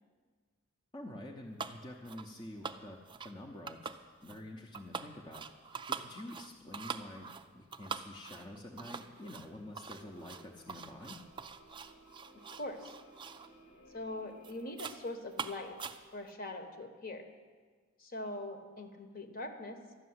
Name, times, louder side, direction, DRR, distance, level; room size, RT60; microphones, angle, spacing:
voice 1, 0.9-3.0 3.2-3.9 4.2-5.5 5.9-11.2, left 1 dB, 25° left, 0 dB, 0.8 m, -47 dB
sound 1, 1.6-2.3 2.6-3.4 3.7-4.4 4.7-13.5 13.9-14.1 14.4-15.0 15.3-16.3, right 6 dB, 25° right, 0.4 m, -44 dB
sound 2, 7.1-14.7, right 1 dB, 85° left, 2.6 m, -61 dB
voice 2, 12.3-12.9 13.9-15.8 16.1-17.2 18.0-19.8, left 2 dB, 45° left, 6 dB, 1.2 m, -42 dB
12.5 x 6.8 x 9.5 m, 1.5 s
head